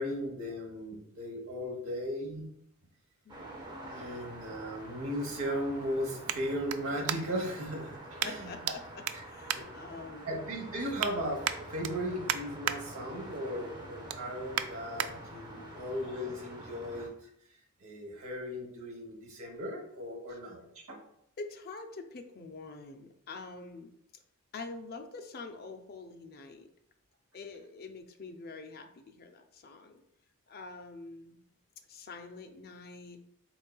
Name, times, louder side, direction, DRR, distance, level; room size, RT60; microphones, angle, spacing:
voice 1, 0.0-2.5 3.9-8.5 9.1-9.2 9.5-9.7 10.3-11.4 11.7-17.1 17.8-21.0, equal, 70° right, 0 dB, 1.1 m, -37 dB
sound 1, 3.3-17.1, right 1 dB, 20° right, 0.6 m, -47 dB
sound 2, 6.2-7.5 8.2-8.8 9.0-10.3 10.7-11.1 11.4-12.8 13.2-13.5 13.8-15.1 15.6-15.7, right 10 dB, 85° right, 0.3 m, -36 dB
voice 2, 8.2-10.3 15.6-15.9 20.3-20.4 21.4-23.9 24.5-26.7 27.3-30.0 30.5-31.4 31.9-33.2, left 3 dB, 45° left, 5 dB, 0.4 m, -46 dB
4.0 x 3.6 x 2.3 m, 0.74 s
head